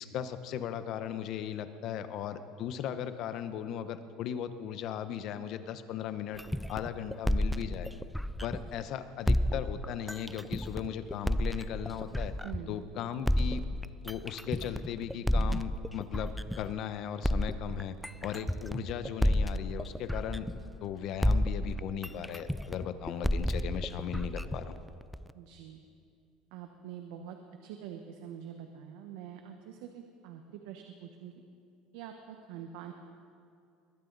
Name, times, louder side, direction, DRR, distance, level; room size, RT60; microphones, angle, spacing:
voice 1, 0.0-6.4 6.7-7.9 8.4-12.3 12.7-13.6 14.0-18.0 18.2-20.5 20.8-24.8, left 9 dB, 55° left, 11 dB, 0.9 m, -37 dB
sound 1, 6.4-8.8 9.3-12.8 13.3-16.8 17.2-20.9 21.2-25.3, equal, ahead, 0.3 m, -31 dB
voice 2, 12.4-12.8 25.3-25.8 26.5-27.4 27.6-31.3 31.9-32.9, right 9 dB, 80° right, 5 dB, 1.1 m, -45 dB
22.0 x 15.5 x 4.0 m, 2.5 s
cardioid pair, 130°, 0 cm